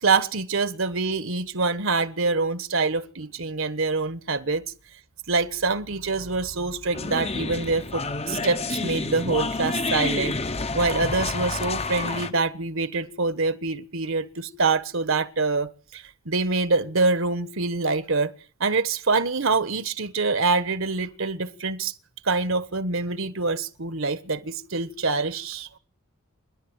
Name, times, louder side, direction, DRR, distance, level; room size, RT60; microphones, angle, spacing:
voice 1, 0.0-4.6 5.3-10.3 10.7-18.3 18.6-21.9 22.2-25.8, right 3 dB, 60° right, 1.3 m, -25 dB
sound 1, 6.9-12.3, left 3 dB, 30° left, 1.0 m, -29 dB
26.5 x 11.0 x 8.9 m
head